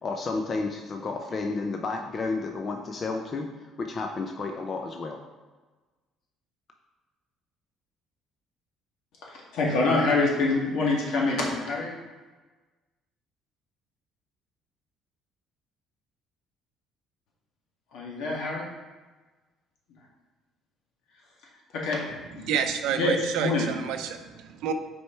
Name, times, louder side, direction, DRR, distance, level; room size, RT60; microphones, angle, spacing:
voice 1, 0.0-3.5 3.8-5.2, left 3 dB, 30° left, 3 dB, 0.4 m, -31 dB
voice 2, 9.2-11.9 17.9-18.7 21.7-22.0 22.4-22.5 22.9-23.7, left 3 dB, 70° left, -2 dB, 1.8 m, -26 dB
voice 3, 22.4-24.7, right 8 dB, 80° right, 7 dB, 0.6 m, -29 dB
6.2 x 4.6 x 4.4 m, 1.3 s
cardioid pair, 145°, 0 cm